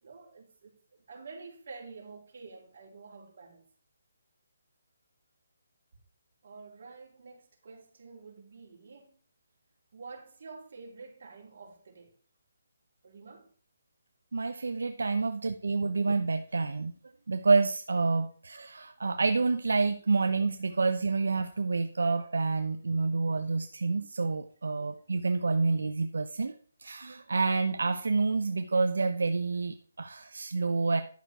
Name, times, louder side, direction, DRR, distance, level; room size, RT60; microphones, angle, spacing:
voice 1, 0.0-3.6 6.4-9.2 9.9-12.1 13.0-13.5, right 4 dB, 50° right, 4.4 m, -49 dB
voice 2, 14.3-16.9 17.3-26.5 26.8-31.0, right 4 dB, 85° right, 0.9 m, -28 dB
11.5 x 6.5 x 4.7 m
hypercardioid pair, 165°, 0 cm